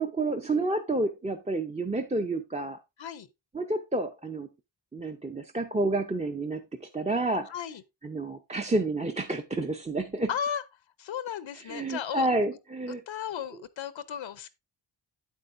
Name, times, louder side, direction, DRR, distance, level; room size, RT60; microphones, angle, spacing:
voice 1, 0.0-2.8 3.5-4.5 4.9-7.5 8.0-10.3 11.7-13.0, right 2 dB, 15° right, 0.6 m, -29 dB
voice 2, 7.5-7.8 10.3-10.6 11.0-12.3 13.1-14.5, left 8 dB, 75° left, 0.7 m, -35 dB
8.7 x 8.1 x 2.5 m
wide cardioid pair, 95°, 47 cm